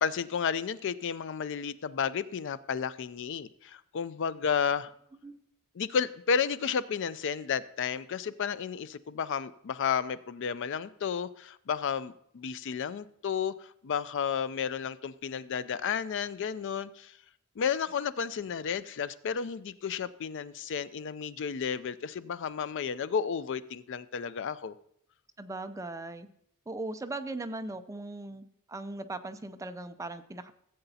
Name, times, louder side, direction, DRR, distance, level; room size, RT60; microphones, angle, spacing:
voice 1, 0.0-4.9 5.7-17.1 17.6-24.7, left 7 dB, 55° left, 16 dB, 0.4 m, -32 dB
voice 2, 25.4-26.3 26.7-30.5, right 2 dB, 15° right, 9 dB, 0.4 m, -39 dB
15.5 x 7.9 x 2.8 m, 0.71 s
head